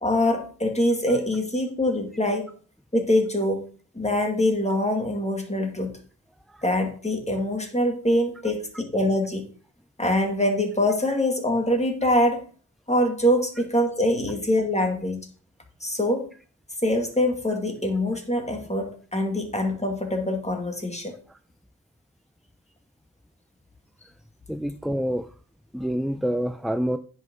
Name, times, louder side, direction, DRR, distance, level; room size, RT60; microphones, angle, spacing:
voice 1, 0.0-2.5 2.9-3.7 3.9-6.0 6.6-9.5 10.0-12.4 12.9-15.2 15.8-16.3 16.8-21.2, left 1 dB, 15° left, 3 dB, 2.1 m, -24 dB
voice 2, 24.5-25.3 25.7-27.0, equal, ahead, 9 dB, 0.4 m, -27 dB
9.7 x 5.4 x 5.3 m, 0.41 s
wide cardioid pair, 80°, 38 cm